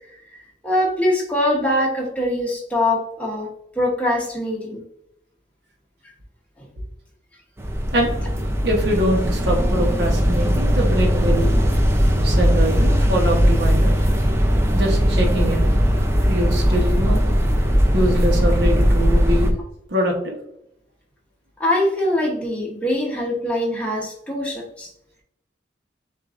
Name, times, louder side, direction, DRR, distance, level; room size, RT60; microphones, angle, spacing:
voice 1, 0.3-3.5 3.8-4.8 6.6-6.7 21.6-24.9, left 1 dB, 10° left, -2 dB, 1.0 m, -23 dB
sound 1, 7.6-19.5, equal, 15° right, 0.5 m, -18 dB
voice 2, 8.6-11.5 12.2-13.9 14.7-15.7 16.3-17.2 17.9-19.5 19.9-20.4, equal, 65° right, 0 dB, 1.0 m, -23 dB
7.1 x 2.5 x 2.5 m, 0.74 s
head